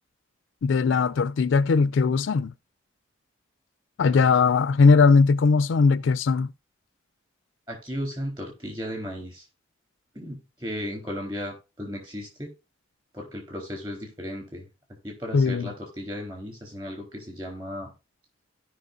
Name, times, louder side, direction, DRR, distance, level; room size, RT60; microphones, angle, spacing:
voice 1, 0.6-2.5 4.0-6.5 15.3-15.7, left 4 dB, 65° left, 0.4 m, -19 dB
voice 2, 7.7-9.4 10.1-12.5 13.1-14.7 15.0-17.9, equal, 25° right, 3.8 m, -35 dB
16.5 x 5.6 x 2.6 m
head